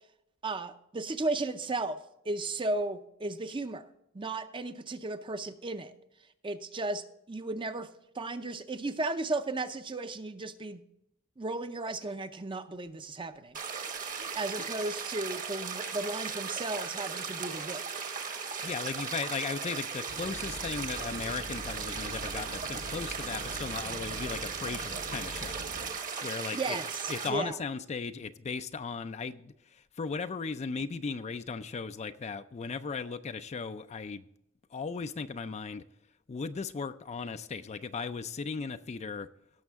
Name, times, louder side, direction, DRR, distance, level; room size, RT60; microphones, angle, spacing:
voice 1, 0.4-2.0 2.3-3.9 4.1-5.9 6.4-7.9 8.1-10.8 11.4-13.6 14.4-17.8 26.5-27.6, right 2 dB, 25° right, 0.6 m, -35 dB
sound 1, 13.5-27.3, right 6 dB, 40° right, 1.2 m, -37 dB
voice 2, 18.6-25.6 25.9-26.8 27.1-34.3 34.7-35.8 36.3-39.3, left 5 dB, 35° left, 0.4 m, -37 dB
sound 2, 20.1-25.9, right 1 dB, 80° right, 2.5 m, -44 dB
17.0 x 6.5 x 3.5 m
head